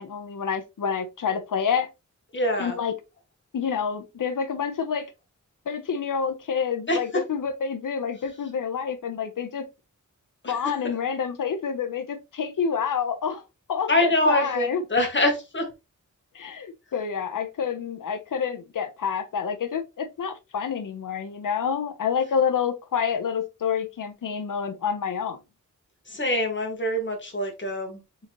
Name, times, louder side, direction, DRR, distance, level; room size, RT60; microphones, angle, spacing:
voice 1, 0.0-1.9 2.6-2.9 3.5-5.1 5.7-9.7 10.5-13.4 13.7-14.8 16.3-25.4, left 7 dB, 85° left, 0.8 m, -28 dB
voice 2, 2.3-2.8 6.9-7.0 10.4-10.9 13.9-15.7 26.1-28.3, left 1 dB, 35° left, 1.6 m, -25 dB
3.9 x 3.9 x 3.0 m
wide cardioid pair, 90°, 31 cm